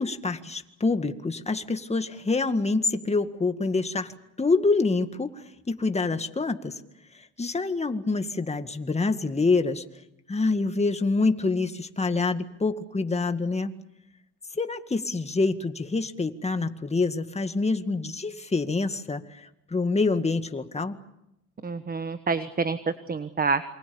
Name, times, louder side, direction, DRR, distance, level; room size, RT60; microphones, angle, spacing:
voice 1, 0.0-4.1 4.4-5.3 5.7-6.7 7.4-9.8 10.3-13.7 14.6-21.0, left 3 dB, 20° left, 8 dB, 1.9 m, -26 dB
voice 2, 21.6-23.6, right 4 dB, 30° right, 11 dB, 1.3 m, -27 dB
28.0 x 24.5 x 7.1 m, 0.84 s
cardioid pair, 90°, 30 cm